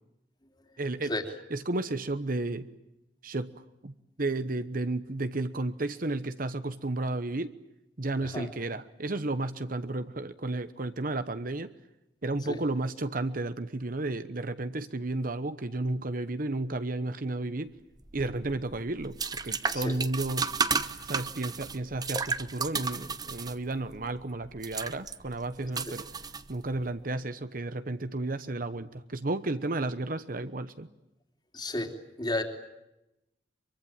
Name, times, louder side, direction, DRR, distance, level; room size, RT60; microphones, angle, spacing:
voice 1, 0.8-1.1 1.5-2.7 3.2-3.5 3.8-3.9 4.2-7.5 8.0-11.7 12.2-17.7 18.1-19.2 19.4-20.5 21.1-26.1 26.5-30.9, right 2 dB, 50° right, 11 dB, 1.0 m, -32 dB
sound 1, 18.0-26.9, right 4 dB, 20° right, 1.0 m, -34 dB
voice 2, 31.5-32.4, left 1 dB, 25° left, 5 dB, 3.1 m, -33 dB
25.0 x 23.5 x 9.0 m, 0.91 s
head